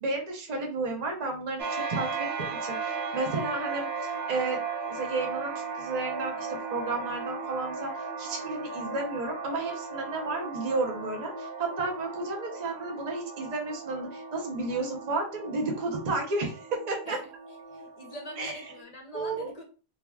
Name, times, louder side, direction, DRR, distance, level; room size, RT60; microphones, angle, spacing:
voice 1, 0.0-4.6 4.9-7.9 8.2-17.2 18.4-18.5 19.1-19.5, right 3 dB, 40° right, 1 dB, 0.8 m, -32 dB
sound 1, 1.6-18.8, right 4 dB, 70° right, 0.9 m, -37 dB
voice 2, 17.7-19.6, equal, 45° left, 1 dB, 0.6 m, -43 dB
3.6 x 2.9 x 2.3 m, 0.36 s
omnidirectional pair, 1.1 m